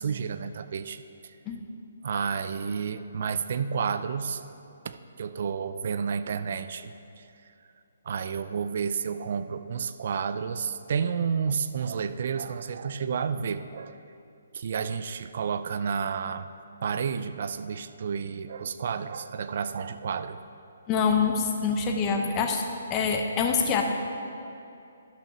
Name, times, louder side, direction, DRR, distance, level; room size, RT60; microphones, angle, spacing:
voice 1, 0.0-1.3 2.0-4.4 4.8-7.2 8.1-14.0 14.5-16.5 16.8-20.4, right 6 dB, 55° right, 11 dB, 0.5 m, -31 dB
voice 2, 20.9-22.6 22.9-23.8, left 5 dB, 20° left, 3 dB, 0.9 m, -25 dB
11.5 x 6.0 x 6.1 m, 2.7 s
hypercardioid pair, 155°, 0 cm